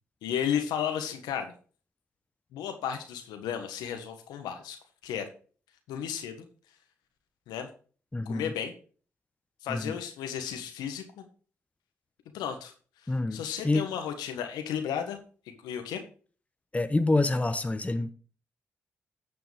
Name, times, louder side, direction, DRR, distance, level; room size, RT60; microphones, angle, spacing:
voice 1, 0.2-1.5 2.5-4.8 5.0-5.2 5.9-6.5 7.5-7.7 8.2-8.7 9.6-11.2 12.3-12.7 13.0-15.2 15.6-16.0, left 8 dB, 85° left, 1.4 m, -33 dB
voice 2, 8.1-8.5 9.7-9.9 13.1-13.9 16.7-18.1, left 2 dB, 20° left, 0.9 m, -27 dB
10.0 x 6.9 x 3.4 m
hypercardioid pair, 40°, 7 cm